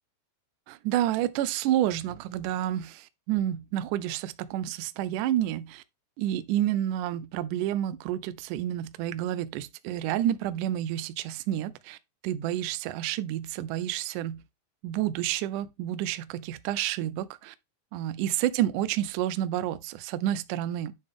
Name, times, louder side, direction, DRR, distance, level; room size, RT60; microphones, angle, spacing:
voice 1, 0.7-5.8 6.2-12.0 12.2-14.4 14.8-17.6 17.9-20.9, right 12 dB, 90° right, 1.8 m, -29 dB
9.0 x 5.3 x 3.6 m
omnidirectional pair, 4.5 m